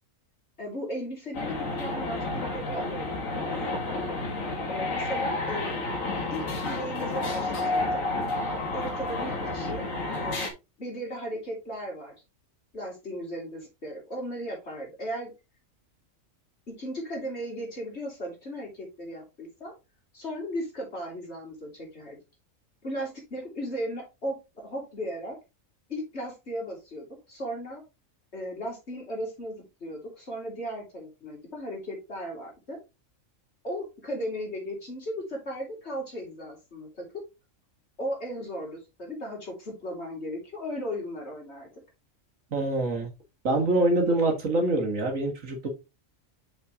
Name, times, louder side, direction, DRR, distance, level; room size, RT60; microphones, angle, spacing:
voice 1, 0.6-3.1 3.3-3.5 4.7-5.7 6.3-8.0 8.7-9.9 10.2-10.5 10.8-12.1 12.7-15.3 16.7-19.7 20.1-22.2 22.8-25.4 25.9-27.8 28.3-32.8 33.6-37.1 38.0-41.7, equal, 55° left, -1 dB, 3.7 m, -36 dB
sound 1, 1.3-10.5, left 2 dB, 80° left, 2.2 m, -30 dB
voice 2, 42.5-43.1 43.4-45.7, right 2 dB, 75° right, 3 dB, 2.2 m, -25 dB
6.5 x 5.8 x 3.5 m, 0.25 s
omnidirectional pair, 1.4 m